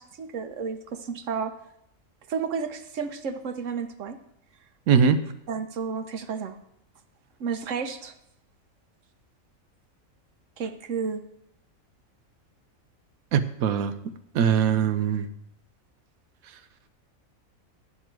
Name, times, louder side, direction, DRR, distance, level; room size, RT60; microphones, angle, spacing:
voice 1, 0.0-1.5 2.3-4.2 5.5-6.6 7.4-8.1 10.6-11.2, right 6 dB, 65° right, 8 dB, 1.1 m, -32 dB
voice 2, 4.9-5.2 13.3-13.9 14.3-15.3, right 7 dB, 90° right, 12 dB, 1.2 m, -21 dB
11.0 x 8.7 x 4.5 m, 0.78 s
omnidirectional pair, 1.4 m